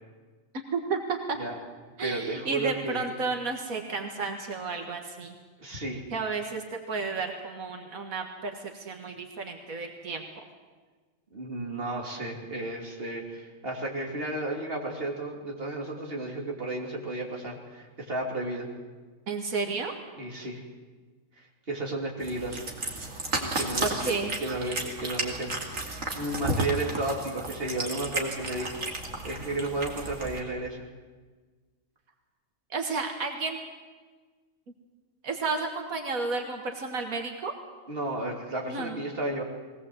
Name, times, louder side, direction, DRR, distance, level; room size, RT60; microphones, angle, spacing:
voice 1, 0.7-1.4 2.0-5.4 6.1-10.2 19.3-19.9 23.8-24.3 32.7-33.6 35.2-37.5 38.7-39.0, right 4 dB, 85° right, 3 dB, 2.1 m, -32 dB
voice 2, 2.0-3.1 5.6-6.0 11.3-18.7 20.2-20.6 21.4-22.7 23.4-28.8 29.2-30.9 37.9-39.4, right 2 dB, 45° right, 0 dB, 3.2 m, -33 dB
Cat, 22.2-30.4, right 2 dB, 65° right, 2.9 m, -33 dB
21.0 x 18.0 x 7.9 m, 1.4 s
omnidirectional pair, 1.4 m